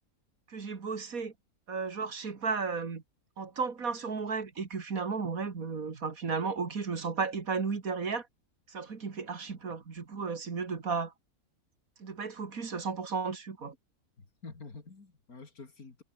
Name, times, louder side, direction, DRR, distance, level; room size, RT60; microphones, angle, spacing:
voice 1, 0.5-1.3 1.7-3.0 3.4-8.3 8.7-11.1 12.0-13.8, right 5 dB, 65° right, 2.6 m, -34 dB
voice 2, 14.2-16.0, left 4 dB, 75° left, 3.6 m, -48 dB
omnidirectional pair, 1.6 m